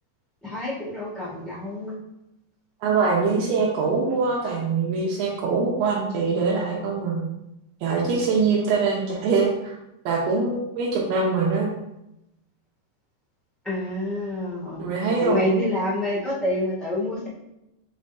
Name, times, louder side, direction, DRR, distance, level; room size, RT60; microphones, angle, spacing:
voice 1, 0.4-1.9 13.6-14.8 15.2-17.3, left 1 dB, ahead, -9 dB, 0.7 m, -27 dB
voice 2, 2.8-7.2 7.8-9.8 10.1-11.7 14.8-15.5, right 4 dB, 75° right, -3 dB, 2.8 m, -23 dB
6.7 x 4.0 x 4.1 m, 0.86 s
omnidirectional pair, 4.9 m